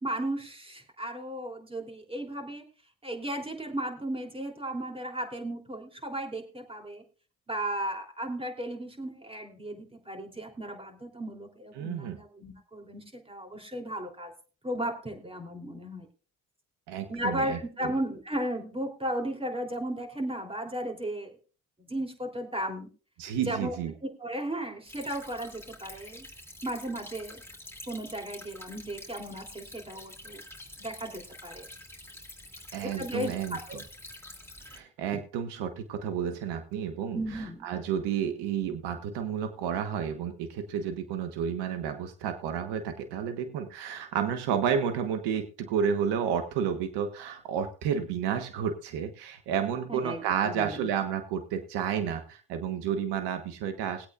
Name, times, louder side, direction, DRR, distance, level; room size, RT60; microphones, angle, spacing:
voice 1, 0.0-2.6 3.0-7.0 7.5-14.3 14.6-16.1 17.1-21.3 21.8-22.9 23.4-23.7 24.0-26.3 26.6-27.4 27.9-30.4 30.8-31.7 32.8-33.8 35.1-35.2 37.1-37.6 49.9-50.9, right 1 dB, 15° right, 3 dB, 3.3 m, -35 dB
voice 2, 11.8-12.2 16.9-17.9 23.2-23.9 32.7-33.8 34.7-54.1, right 8 dB, 80° right, 7 dB, 1.3 m, -31 dB
Stream / Trickle dribble, 24.9-34.8, left 1 dB, 5° left, 2.7 m, -47 dB
21.0 x 8.3 x 2.5 m, 0.35 s
supercardioid pair, 55°, 40 cm